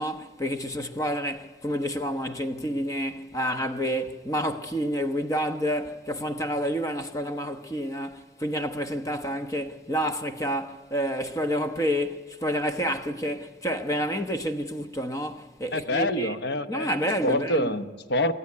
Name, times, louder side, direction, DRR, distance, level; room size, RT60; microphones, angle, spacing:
voice 1, 0.0-16.3 16.7-17.7, equal, 20° left, 1.0 m, -29 dB
voice 2, 15.7-16.9 17.2-18.4, left 1 dB, 65° left, 1.0 m, -26 dB
24.5 x 14.0 x 9.8 m
head